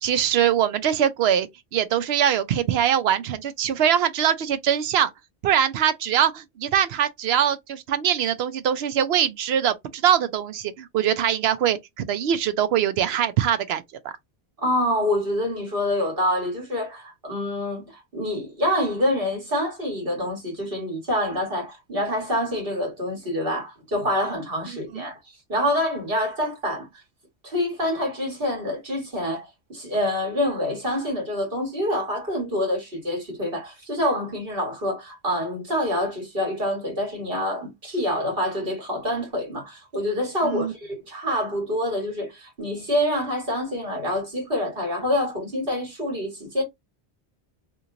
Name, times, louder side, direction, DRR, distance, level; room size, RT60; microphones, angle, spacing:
voice 1, 0.0-5.1 5.4-13.8 24.9-25.0 40.4-40.7, right 9 dB, 75° right, 0.8 m, -22 dB
voice 2, 14.6-25.2 25.5-26.9 27.4-46.6, left 1 dB, 55° right, 1.8 m, -26 dB
3.0 x 2.5 x 3.7 m
omnidirectional pair, 1.1 m